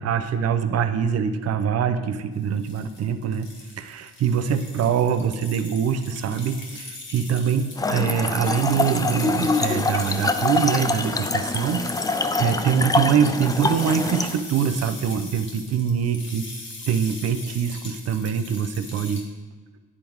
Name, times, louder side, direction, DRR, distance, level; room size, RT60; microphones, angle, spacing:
voice 1, 0.0-3.5 3.8-16.5 16.9-19.2, right 7 dB, 55° right, 10 dB, 0.6 m, -24 dB
sound 1, 2.4-19.2, left 2 dB, 40° left, 1.7 m, -40 dB
Trickle dribble / Fill (with liquid), 7.8-14.4, left 3 dB, 15° left, 0.3 m, -25 dB
9.7 x 3.6 x 4.6 m, 1.3 s
cardioid pair, 90°, 30 cm